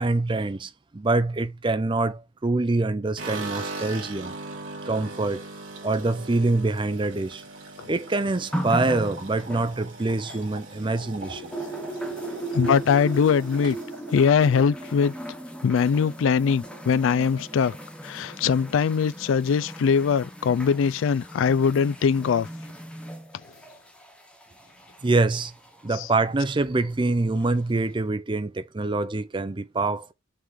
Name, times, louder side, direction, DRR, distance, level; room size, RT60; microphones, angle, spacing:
voice 1, 0.0-4.3 4.9-5.5 5.8-7.4 7.9-11.5 25.0-25.5 25.8-30.1, right 2 dB, 25° right, 0.5 m, -25 dB
sound 1, 3.2-15.4 15.8-16.4 16.6-16.7 17.0-17.7, right 3 dB, 70° right, 2.5 m, -40 dB
sound 2, 8.5-10.9 11.2-25.9 26.8-26.9, right 1 dB, 5° left, 1.1 m, -37 dB
voice 2, 12.5-13.8 14.1-15.1 15.6-17.8 18.0-22.5 25.9-26.1, left 6 dB, 75° left, 0.3 m, -22 dB
5.7 x 3.8 x 4.7 m
head